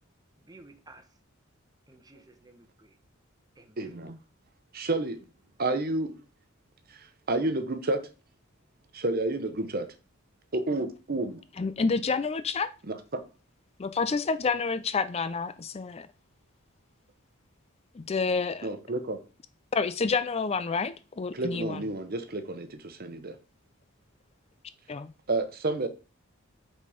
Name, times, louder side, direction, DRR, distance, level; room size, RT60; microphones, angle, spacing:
voice 1, 0.4-1.1 1.9-3.0 3.6-3.9, right 2 dB, 20° right, 1.0 m, -54 dB
voice 2, 3.8-4.2 4.7-5.2 5.6-6.2 6.9-8.0 8.9-9.9 10.5-11.4 13.1-13.2 18.6-19.2 21.3-23.3 25.3-25.9, right 2 dB, 45° right, 0.9 m, -30 dB
voice 3, 11.5-12.7 13.8-16.1 17.9-18.8 19.7-21.9 24.9-25.1, left 4 dB, 30° left, 0.4 m, -29 dB
8.5 x 4.2 x 5.0 m
head